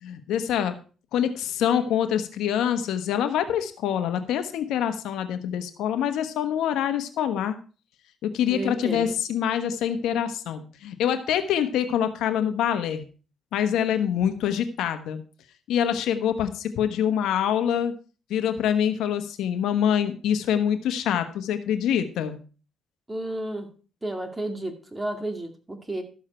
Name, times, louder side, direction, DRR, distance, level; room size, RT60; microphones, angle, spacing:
voice 1, 0.0-0.7 1.1-7.6 8.2-13.0 13.5-15.2 15.7-17.9 18.3-22.4, left 9 dB, 85° left, 8 dB, 1.2 m, -25 dB
voice 2, 8.5-9.2 23.1-23.7 24.0-26.0, right 1 dB, 15° right, 5 dB, 2.2 m, -32 dB
13.0 x 7.4 x 4.4 m, 0.37 s
cardioid pair, 90°, 0 cm